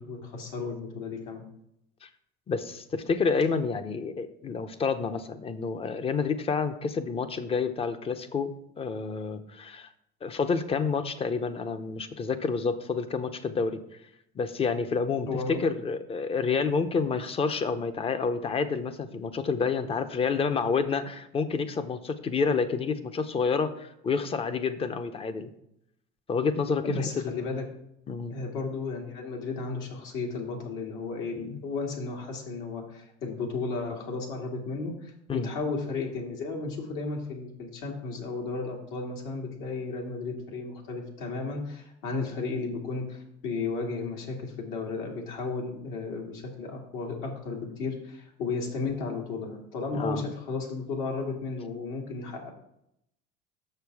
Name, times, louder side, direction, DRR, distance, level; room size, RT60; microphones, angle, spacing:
voice 1, 0.0-1.4 15.2-15.7 26.8-27.6 28.3-52.5, left 4 dB, 70° left, 0 dB, 2.3 m, -34 dB
voice 2, 2.5-9.9 10.2-13.8 14.3-15.3 15.6-25.5 26.3-27.3 28.1-28.4 31.4-31.6 35.3-35.5 49.9-50.3, left 5 dB, 25° left, 10 dB, 0.8 m, -29 dB
6.8 x 6.6 x 4.7 m, 0.76 s
supercardioid pair, 115°, 21 cm